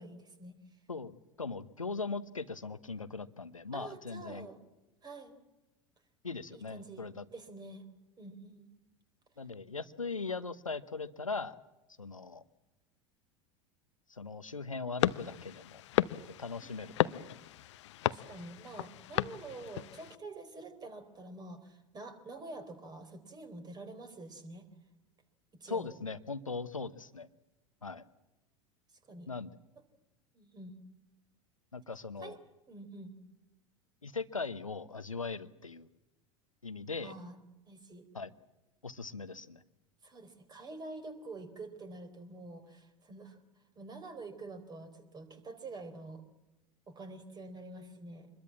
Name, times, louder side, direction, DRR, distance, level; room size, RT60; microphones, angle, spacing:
voice 1, 0.0-0.8 3.7-4.6 5.0-5.4 6.5-7.1 7.3-7.8 8.2-8.7 16.6-17.1 18.0-24.7 25.6-25.9 29.0-29.3 30.3-30.8 32.2-32.4 32.7-33.1 37.0-37.4 37.7-38.1 40.0-43.4 43.8-46.2 46.9-48.3, right 2 dB, 25° right, 9 dB, 4.0 m, -47 dB
voice 2, 0.9-4.5 6.2-7.2 9.4-11.5 12.0-12.4 14.1-15.8 16.4-17.2 25.7-27.3 27.8-28.0 29.3-29.5 31.7-32.4 34.0-35.9 36.6-37.1 38.1-38.3 38.8-39.6, left 4 dB, 85° left, 15 dB, 1.0 m, -39 dB
sound 1, 15.0-20.2, left 14 dB, 60° left, 0.8 m, -34 dB
25.5 x 21.5 x 7.4 m, 1.0 s
figure-of-eight pair, 80°, 17 cm